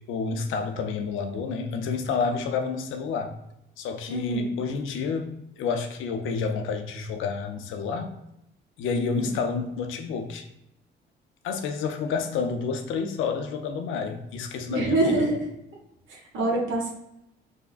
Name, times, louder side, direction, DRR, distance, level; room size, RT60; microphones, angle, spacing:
voice 1, 0.1-3.3 3.8-8.1 8.8-10.5 11.4-15.3, left 5 dB, 85° left, 6 dB, 0.5 m, -29 dB
voice 2, 4.1-4.5 8.9-9.3 14.7-15.4 16.1-16.9, right 2 dB, 80° right, -1 dB, 0.9 m, -26 dB
4.6 x 2.2 x 2.4 m, 0.84 s
cardioid pair, 90°, 20 cm